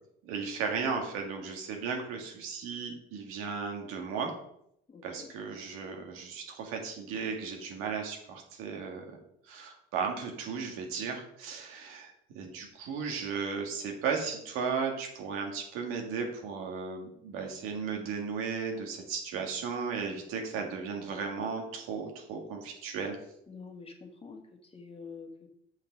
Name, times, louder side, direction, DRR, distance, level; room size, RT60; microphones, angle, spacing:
voice 1, 0.2-4.3 5.0-9.1 9.5-23.2, right 5 dB, 85° right, 2 dB, 2.0 m, -35 dB
voice 2, 4.9-5.3 23.5-24.4 24.7-25.5, left 5 dB, 25° left, 4 dB, 1.5 m, -46 dB
7.0 x 5.7 x 5.2 m, 0.73 s
cardioid pair, 100°, 21 cm